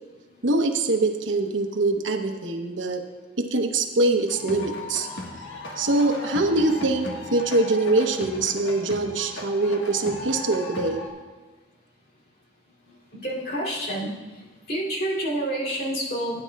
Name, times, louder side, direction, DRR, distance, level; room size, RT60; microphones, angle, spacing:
voice 1, 0.4-3.0 3.4-5.1 5.8-11.0, right 2 dB, 80° right, 4 dB, 1.0 m, -23 dB
sound 1, 4.3-11.1, left 1 dB, 75° left, 1.5 m, -36 dB
voice 2, 13.2-14.1 14.7-16.4, right 1 dB, 50° left, -5 dB, 2.7 m, -28 dB
17.0 x 9.6 x 2.3 m, 1.3 s
head